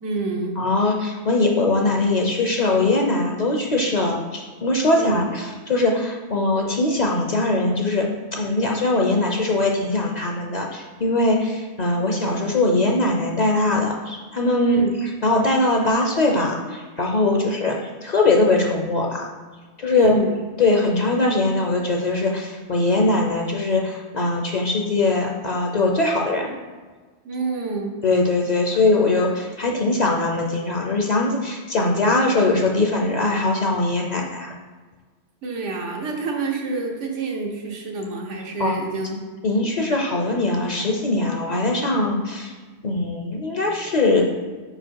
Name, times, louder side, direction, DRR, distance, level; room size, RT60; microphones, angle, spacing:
voice 1, 0.0-0.6 4.9-5.2 14.6-14.9 17.3-17.5 19.9-20.4 27.2-28.0 35.4-39.2, right 3 dB, 90° right, 1 dB, 1.3 m, -28 dB
voice 2, 0.6-17.8 18.0-19.3 19.8-20.2 20.6-26.5 28.0-34.5 38.6-38.7 39.4-42.5 42.8-44.3, left 2 dB, 45° left, 1 dB, 0.6 m, -21 dB
4.9 x 4.7 x 4.6 m, 1.4 s
omnidirectional pair, 1.2 m